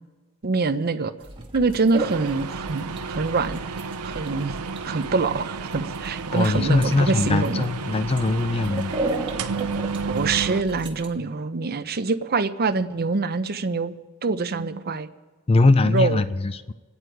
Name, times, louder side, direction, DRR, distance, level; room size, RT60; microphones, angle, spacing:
voice 1, 0.4-1.1 1.5-3.6 4.0-4.6 4.8-7.7 10.1-13.9 14.2-15.1 15.8-16.2, right 4 dB, 45° right, 9 dB, 0.7 m, -25 dB
sound 1, 1.2-11.1, right 2 dB, 25° right, 1.6 m, -35 dB
sound 2, 2.0-10.6, right 4 dB, 85° right, 0.6 m, -32 dB
voice 2, 6.3-8.9 15.5-16.7, left 3 dB, 25° left, 13 dB, 0.4 m, -21 dB
27.5 x 9.7 x 4.7 m, 1.3 s
head